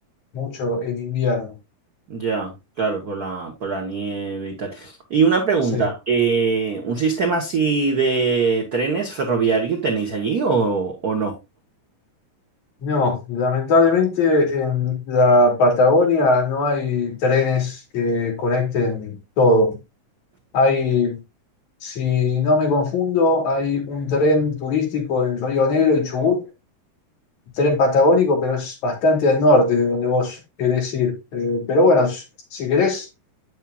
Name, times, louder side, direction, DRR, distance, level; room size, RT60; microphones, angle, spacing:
voice 1, 0.3-1.5 5.7-5.9 12.8-19.8 20.5-21.2 21.8-26.4 27.6-32.2 32.5-33.1, left 3 dB, 70° left, 3.4 m, -19 dB
voice 2, 2.1-2.5 2.8-11.3, right 5 dB, 70° right, 0.8 m, -22 dB
8.3 x 7.3 x 2.3 m
omnidirectional pair, 3.5 m